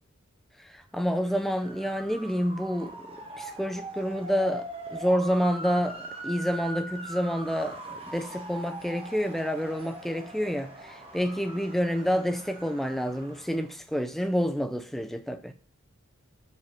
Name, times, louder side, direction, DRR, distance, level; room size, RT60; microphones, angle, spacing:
voice 1, 0.9-3.0 3.4-4.7 4.9-15.5, equal, ahead, 0.4 m, -28 dB
Motor vehicle (road) / Siren, 1.0-13.7, right 1 dB, 25° right, 1.0 m, -41 dB
5.3 x 5.0 x 5.8 m
head